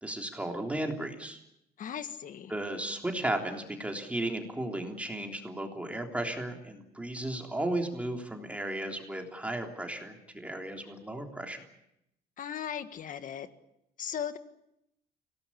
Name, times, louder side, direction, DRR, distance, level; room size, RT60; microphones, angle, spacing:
voice 1, 0.0-1.4 2.5-11.6, right 1 dB, 10° right, 2 dB, 3.4 m, -35 dB
voice 2, 1.8-2.5 12.4-13.5 14.0-14.4, left 8 dB, 50° left, 10 dB, 1.8 m, -37 dB
24.5 x 18.0 x 8.7 m, 0.83 s
cardioid pair, 110°, 17 cm